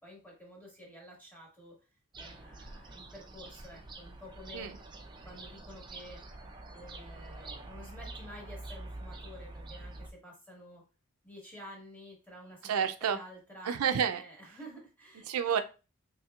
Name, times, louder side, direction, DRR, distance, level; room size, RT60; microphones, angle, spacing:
voice 1, 0.0-1.8 2.2-4.7 5.2-6.2 6.7-10.8 11.2-15.3, equal, 10° left, -3 dB, 1.4 m, -50 dB
sound 1, 2.1-10.1, right 2 dB, 20° right, 0.4 m, -46 dB
voice 2, 12.6-13.2 13.7-14.2 15.3-15.6, right 8 dB, 85° right, 9 dB, 0.4 m, -29 dB
4.3 x 3.2 x 2.3 m, 0.32 s
head